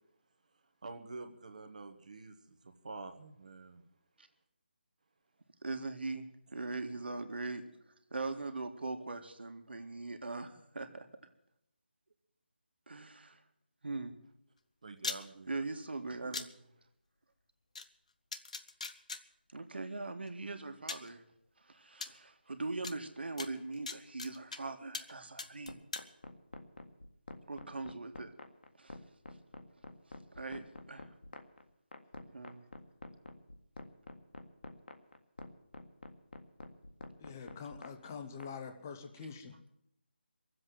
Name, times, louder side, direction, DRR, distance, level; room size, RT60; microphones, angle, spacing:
voice 1, 0.8-3.9 14.8-15.6 16.0-16.4, right 3 dB, 45° right, 7 dB, 1.4 m, -48 dB
voice 2, 5.6-7.6 8.1-11.1 12.9-13.4 13.8-14.1 15.5-16.5 19.5-21.2 21.6-25.8 27.5-28.3 28.8-29.0 30.3-31.1 32.3-32.6, right 3 dB, 70° right, 6 dB, 2.0 m, -41 dB
sound 1, 15.0-15.2 16.3-16.5 17.7-17.8 18.3-19.2 20.3-20.4 20.9-21.1 22.0-22.1 22.8-22.9 23.4-24.6 24.9-25.1 25.4-26.1, left 4 dB, 40° left, 0.9 m, -40 dB
sound 2, 25.7-38.5, left 2 dB, 65° left, 1.8 m, -47 dB
voice 3, 37.2-39.6, left 6 dB, 15° left, 6 dB, 0.8 m, -45 dB
23.0 x 7.8 x 7.8 m, 0.78 s
figure-of-eight pair, 175°, 6 cm